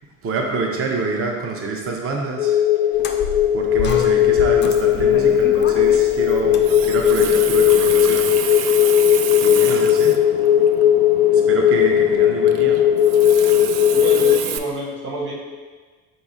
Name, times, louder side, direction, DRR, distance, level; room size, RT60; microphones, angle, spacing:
voice 1, 0.2-2.6 3.5-8.3 9.4-10.2 11.3-12.8, right 3 dB, 30° right, 1 dB, 0.8 m, -27 dB
sound 1, 2.4-14.4, left 10 dB, 80° left, 0.5 m, -16 dB
sound 2, 2.9-8.2, left 5 dB, 30° left, 0.4 m, -31 dB
Water tap faucet, 6.4-14.6, right 9 dB, 60° right, 0.5 m, -30 dB
voice 2, 13.9-15.3, equal, 85° right, -5 dB, 1.0 m, -28 dB
5.2 x 3.9 x 2.4 m, 1.4 s
hypercardioid pair, 65°, 44 cm